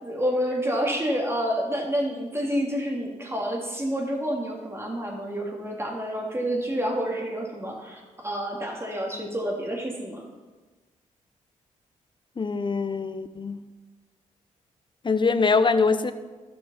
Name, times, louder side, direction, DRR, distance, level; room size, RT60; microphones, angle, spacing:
voice 1, 0.0-10.2, equal, 20° right, -1 dB, 3.2 m, -28 dB
voice 2, 12.4-13.6 15.0-16.1, left 4 dB, 35° left, 12 dB, 0.8 m, -23 dB
12.0 x 7.0 x 5.8 m, 1.3 s
cardioid pair, 60°, 14 cm